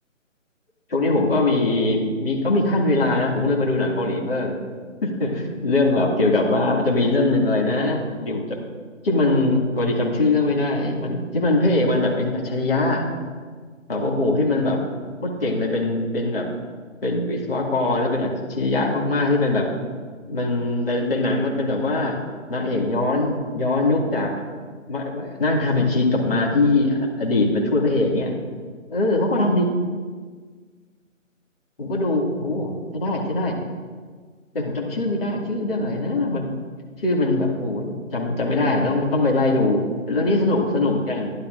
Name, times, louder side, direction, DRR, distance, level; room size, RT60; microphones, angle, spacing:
voice 1, 0.9-4.5 5.0-8.6 9.0-13.0 13.9-14.9 15.2-16.5 17.0-19.7 20.3-22.2 22.5-24.4 24.9-28.3 28.9-29.7 31.8-33.6 34.5-36.5 37.0-41.3, left 2 dB, 45° left, -2 dB, 2.3 m, -22 dB
13.0 x 11.0 x 2.6 m, 1.5 s
figure-of-eight pair, 165°, 39 cm